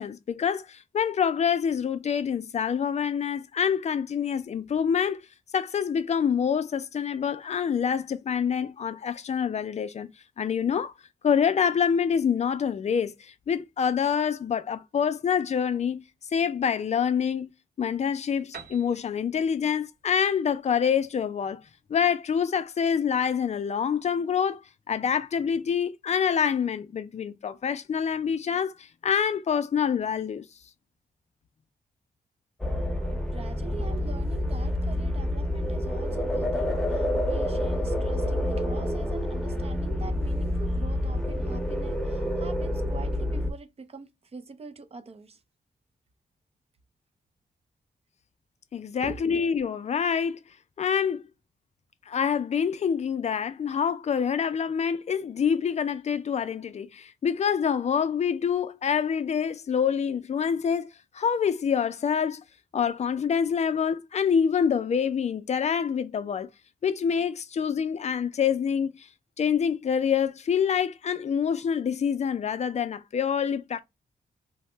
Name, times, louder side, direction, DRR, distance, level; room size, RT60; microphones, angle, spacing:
voice 1, 0.0-5.2 5.5-10.1 10.4-10.9 11.2-16.0 16.3-17.5 17.8-21.6 21.9-24.6 24.9-30.5 48.7-50.4 50.8-51.3 52.1-60.9 61.1-62.4 62.7-66.5 66.8-69.1 69.4-73.8, left 7 dB, 45° left, 0.4 m, -26 dB
Piano, 18.5-22.2, right 5 dB, 70° right, 0.7 m, -49 dB
sound 1, 32.6-43.5, left 1 dB, 5° left, 0.7 m, -28 dB
voice 2, 33.3-45.4 49.0-49.3, right 4 dB, 40° right, 0.5 m, -44 dB
2.8 x 2.1 x 3.1 m
wide cardioid pair, 105°, 16 cm